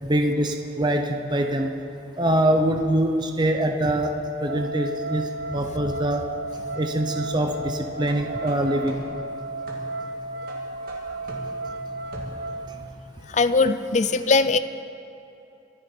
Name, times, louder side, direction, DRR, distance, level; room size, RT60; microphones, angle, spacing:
voice 1, 0.0-1.7 2.2-4.1 4.4-5.3 5.5-6.2 6.8-9.0, right 1 dB, 25° right, 4 dB, 0.7 m, -23 dB
sound 1, 4.5-12.7, right 1 dB, 85° right, 0.6 m, -34 dB
sound 2, 8.0-12.7, right 1 dB, 55° right, 2.1 m, -42 dB
voice 2, 13.3-14.6, left 3 dB, 40° left, 11 dB, 0.5 m, -20 dB
24.5 x 9.8 x 4.5 m, 2.9 s
head